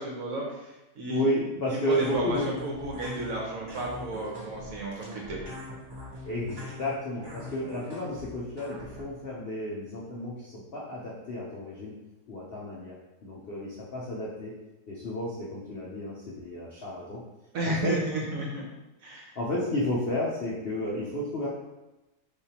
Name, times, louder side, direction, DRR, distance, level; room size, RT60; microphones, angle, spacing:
voice 1, 0.0-1.2 1.7-5.4 17.5-18.7 19.0-19.3, right 2 dB, 60° right, -2 dB, 1.0 m, -33 dB
voice 2, 1.1-2.5 6.2-11.9 12.3-13.0 13.2-14.5 14.9-17.2 17.6-17.9 19.4-21.5, left 1 dB, 60° left, -5 dB, 0.6 m, -32 dB
sound 1, 1.9-9.0, left 1 dB, 25° right, 0.6 m, -42 dB
4.6 x 3.5 x 2.9 m, 1.0 s
omnidirectional pair, 1.9 m